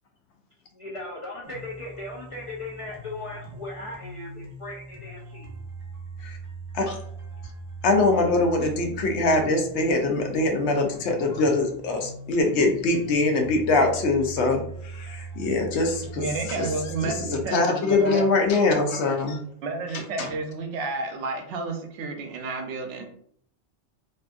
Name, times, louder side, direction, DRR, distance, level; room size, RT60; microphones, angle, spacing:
voice 1, 0.7-5.5, left 2 dB, 60° left, -4 dB, 0.3 m, -38 dB
sound 1, 1.4-17.4, right 3 dB, 40° right, 0.5 m, -40 dB
voice 2, 7.8-16.7 17.0-19.4 20.2-20.3, left 3 dB, 75° left, 3 dB, 0.9 m, -23 dB
voice 3, 16.2-18.3 19.6-23.0, right 3 dB, 80° right, 4 dB, 0.9 m, -31 dB
2.6 x 2.5 x 2.3 m, 0.64 s
omnidirectional pair, 1.2 m